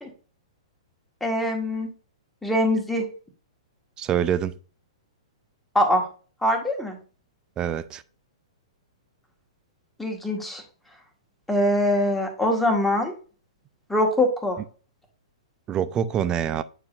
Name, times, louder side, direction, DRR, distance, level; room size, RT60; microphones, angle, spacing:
voice 1, 1.2-1.9 2.4-3.0 5.8-6.0 6.4-7.0 10.0-10.6 11.5-13.1 13.9-14.6, left 1 dB, 5° left, 1.7 m, -23 dB
voice 2, 4.0-4.5 7.6-8.0 15.7-16.6, right 9 dB, 25° right, 0.5 m, -25 dB
8.6 x 4.7 x 2.5 m
figure-of-eight pair, 115°, 3 cm